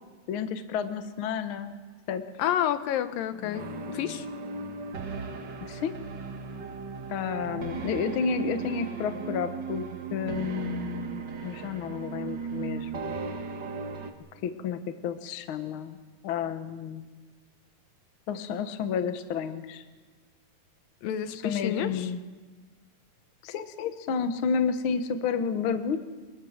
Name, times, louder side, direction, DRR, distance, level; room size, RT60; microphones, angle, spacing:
voice 1, 0.3-1.7 2.1-2.2 3.4-4.1 5.6-5.9 7.1-9.8 10.1-13.2 14.4-16.0 16.2-17.1 18.3-19.8 21.3-22.2 23.4-26.0, left 6 dB, 65° left, 9 dB, 1.3 m, -31 dB
voice 2, 2.4-4.3 21.0-22.1, left 10 dB, 85° left, 11 dB, 2.6 m, -29 dB
sound 1, 3.5-14.1, right 5 dB, 50° right, 1.4 m, -36 dB
24.0 x 22.0 x 6.6 m, 1.4 s
omnidirectional pair, 3.9 m